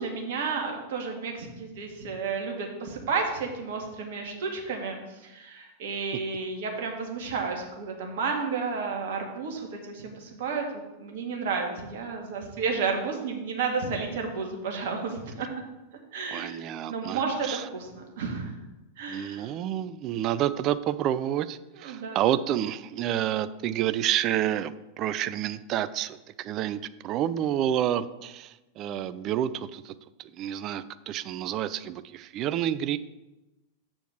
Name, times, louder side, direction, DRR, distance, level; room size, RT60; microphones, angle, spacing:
voice 1, 0.0-10.7 11.0-15.5 16.1-16.6 16.9-18.5 19.0-19.5 21.8-22.2, right 5 dB, 55° right, 2 dB, 1.6 m, -32 dB
voice 2, 16.3-17.7 19.1-29.9 30.2-33.0, right 11 dB, 35° right, 14 dB, 0.3 m, -29 dB
7.1 x 4.4 x 6.3 m, 1.0 s
figure-of-eight pair, 90°, 0 cm